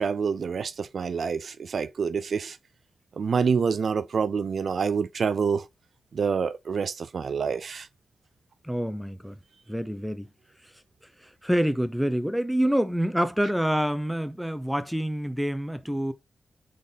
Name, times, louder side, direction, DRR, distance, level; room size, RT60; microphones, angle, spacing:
voice 1, 0.0-2.6 3.2-5.6 6.1-7.9, right 6 dB, 65° right, 0.3 m, -27 dB
voice 2, 8.6-9.4 9.7-10.3 11.2-16.1, equal, ahead, 0.6 m, -27 dB
4.0 x 3.7 x 3.4 m
cardioid pair, 60°, 0 cm